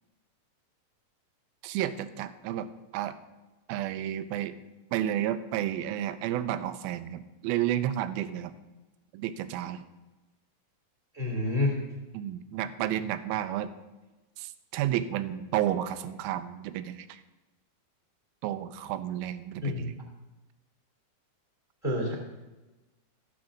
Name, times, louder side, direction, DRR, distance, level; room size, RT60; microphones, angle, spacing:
voice 1, 1.6-2.7 2.9-3.2 3.7-4.5 4.9-8.5 9.1-9.8 12.1-13.7 14.4-17.2 18.4-19.9, right 12 dB, 80° right, 12 dB, 2.3 m, -31 dB
voice 2, 11.1-11.8 19.6-19.9 21.8-22.1, left 2 dB, 10° left, 0 dB, 1.8 m, -28 dB
14.5 x 4.9 x 6.2 m, 1.1 s
omnidirectional pair, 4.5 m